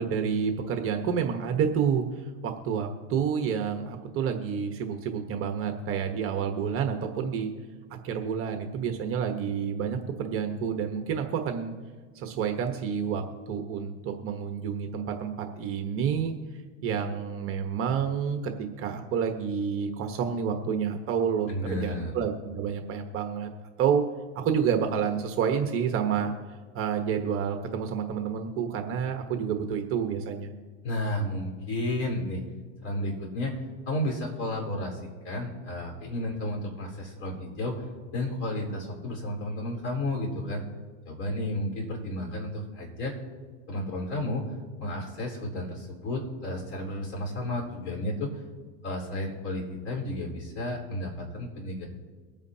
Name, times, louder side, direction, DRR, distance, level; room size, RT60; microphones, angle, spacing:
voice 1, 0.0-7.5 8.0-11.7 12.1-16.3 16.8-23.5 23.8-24.0 24.3-26.3 26.7-30.5, right 7 dB, 35° right, 4 dB, 1.2 m, -29 dB
voice 2, 21.5-22.1 30.8-32.4 32.8-33.5 33.9-35.0 35.2-37.8 38.1-40.6 41.0-43.1 43.7-44.4 44.8-48.3 48.8-51.8, left 1 dB, 40° left, 0 dB, 4.4 m, -32 dB
23.5 x 8.9 x 2.8 m, 1.5 s
supercardioid pair, 135°, 38 cm